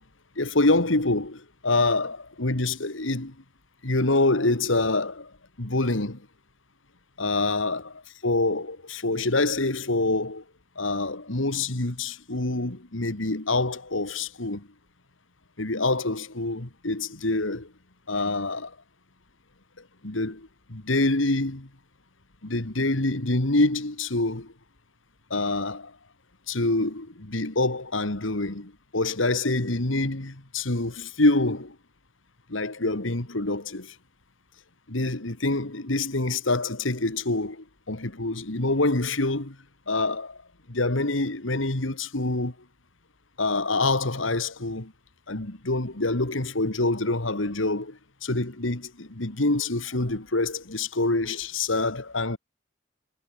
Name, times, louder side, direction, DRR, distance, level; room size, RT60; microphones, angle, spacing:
voice 1, 0.4-3.3 3.8-5.3 5.6-6.2 7.2-7.8 8.2-10.4 10.8-14.7 15.6-17.7 18.1-18.7 20.0-21.7 22.4-24.5 25.3-25.9 26.5-31.8 32.5-33.9 34.9-39.6 39.9-40.4 40.7-42.5 43.4-44.9 45.3-52.4, left 2 dB, 85° left, 2.3 m, -26 dB
head